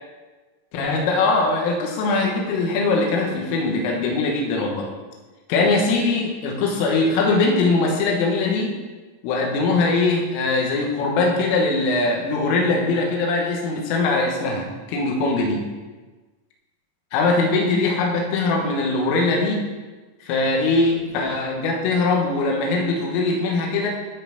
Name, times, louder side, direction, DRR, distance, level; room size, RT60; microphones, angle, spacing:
voice 1, 0.7-4.9 5.5-8.8 9.2-15.6 17.1-19.7 20.2-23.9, left 3 dB, 80° left, 0 dB, 3.9 m, -21 dB
15.0 x 5.8 x 4.1 m, 1.3 s
omnidirectional pair, 6.0 m